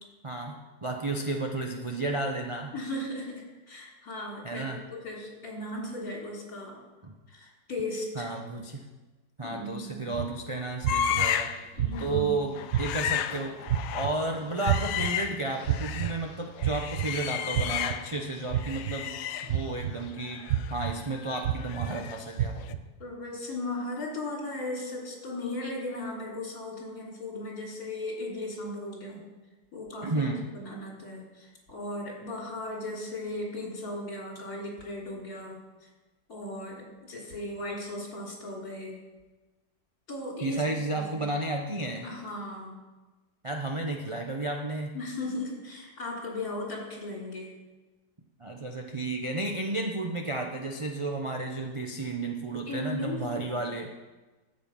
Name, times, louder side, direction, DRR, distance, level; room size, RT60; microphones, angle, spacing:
voice 1, 0.2-2.7 4.4-4.8 7.0-7.1 8.1-8.9 9.4-11.5 12.0-13.6 13.9-19.1 19.4-22.6 30.0-30.5 40.4-42.1 43.4-45.0 48.4-53.9, right 2 dB, 40° right, 1 dB, 0.4 m, -32 dB
voice 2, 2.7-6.8 7.3-8.3 9.4-10.0 11.8-12.4 23.0-29.2 29.7-30.3 30.5-35.9 36.3-39.0 40.1-40.6 41.0-41.3 42.0-42.8 44.9-47.5 52.7-53.6, left 2 dB, 50° left, -3 dB, 3.7 m, -37 dB
sound 1, 10.1-10.3 10.8-11.3 11.8-12.2 12.7-13.1 13.7-14.1 14.7-15.1 15.7-16.1 16.6-17.1 17.5-17.9 18.5-18.9 19.5-19.9 20.5-20.9 21.4-21.9 22.4-22.8, right 11 dB, 60° right, 0.9 m, -27 dB
sound 2, 10.9-11.7 11.9-12.2 12.5-16.2 16.6-18.2 18.5-22.3 22.6-22.7, left 9 dB, 85° left, 1.3 m, -33 dB
13.0 x 7.9 x 5.3 m, 1.2 s
omnidirectional pair, 2.0 m